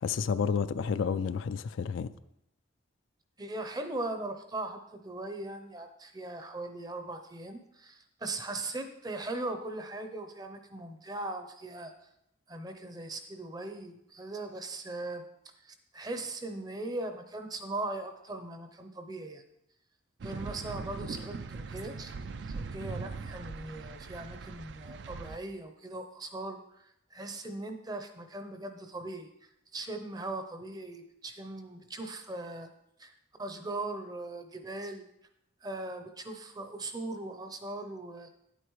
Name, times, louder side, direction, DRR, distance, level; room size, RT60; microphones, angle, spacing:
voice 1, 0.0-2.1, left 6 dB, 75° left, 0.3 m, -30 dB
voice 2, 3.4-11.9 12.5-15.2 15.6-19.4 20.2-22.1 22.5-29.3 29.7-32.7 33.0-33.1 33.4-35.1 35.6-38.3, right 2 dB, 20° right, 0.6 m, -39 dB
sound 1, 20.2-25.4, right 4 dB, 60° right, 0.4 m, -40 dB
9.6 x 8.1 x 3.1 m
head